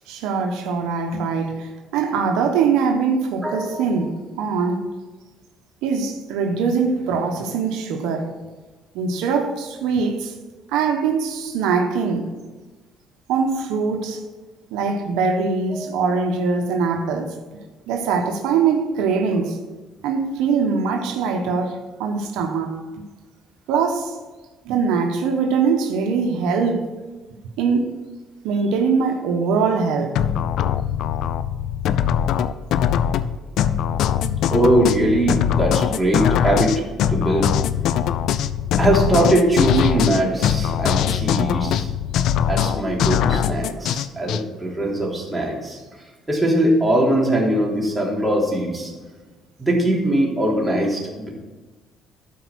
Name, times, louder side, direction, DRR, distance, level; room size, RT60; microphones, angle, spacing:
voice 1, 0.1-4.9 5.8-8.3 8.9-10.3 10.7-12.3 13.3-14.2 14.7-17.4 17.9-19.6 20.0-22.8 23.7-24.1 24.6-26.9 27.6-27.9 28.4-30.2 34.2-34.3, right 5 dB, 90° right, 1.1 m, -22 dB
voice 2, 3.4-3.8 15.7-16.0 34.5-36.8 37.1-37.5 38.8-41.9 42.5-45.8 46.3-48.9 49.6-51.3, right 1 dB, 10° right, 3.3 m, -21 dB
sound 1, 30.1-44.4, left 9 dB, 75° left, 0.5 m, -21 dB
12.5 x 4.7 x 6.1 m
cardioid pair, 100°, 0 cm